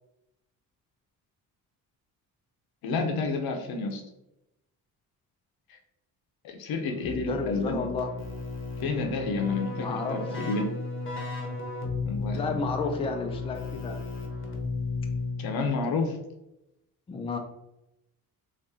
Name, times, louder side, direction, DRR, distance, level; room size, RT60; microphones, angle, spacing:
voice 1, 2.8-4.0 6.4-7.9 8.8-10.6 12.0-12.6 15.4-16.2, left 4 dB, 85° left, 4 dB, 0.7 m, -30 dB
voice 2, 6.9-8.1 9.8-10.2 12.3-14.0 17.1-17.4, left 4 dB, 15° left, 4 dB, 0.3 m, -32 dB
Keyboard (musical), 7.0-15.7, left 3 dB, 35° left, 0.8 m, -34 dB
2.8 x 2.6 x 3.5 m, 0.89 s
cardioid pair, 115°, 36 cm